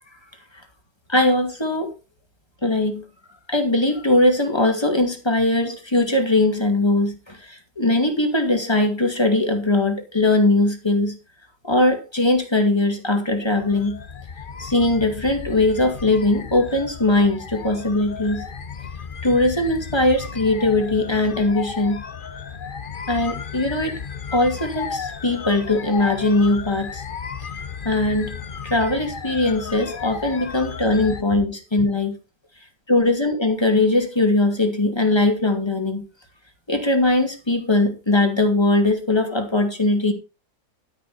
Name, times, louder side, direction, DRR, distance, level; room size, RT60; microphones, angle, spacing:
voice 1, 1.1-1.9 2.6-3.0 3.5-11.2 11.6-14.0 14.6-18.5 19.2-22.0 23.1-24.0 24.3-27.0 27.8-28.4 28.6-32.1 32.9-36.0 36.7-40.1, left 2 dB, 15° left, 2.3 m, -20 dB
sound 1, 13.5-31.2, left 6 dB, 40° left, 0.8 m, -34 dB
11.5 x 10.5 x 4.1 m
omnidirectional pair, 1.9 m